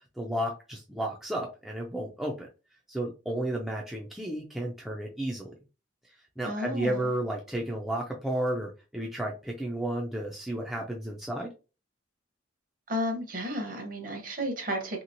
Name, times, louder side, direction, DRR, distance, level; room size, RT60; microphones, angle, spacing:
voice 1, 0.2-2.5 2.9-5.5 6.4-11.5, right 1 dB, ahead, -1 dB, 0.3 m, -32 dB
voice 2, 6.4-7.1 12.9-15.0, equal, 45° right, 3 dB, 0.8 m, -32 dB
2.9 x 2.8 x 2.6 m, 0.32 s
head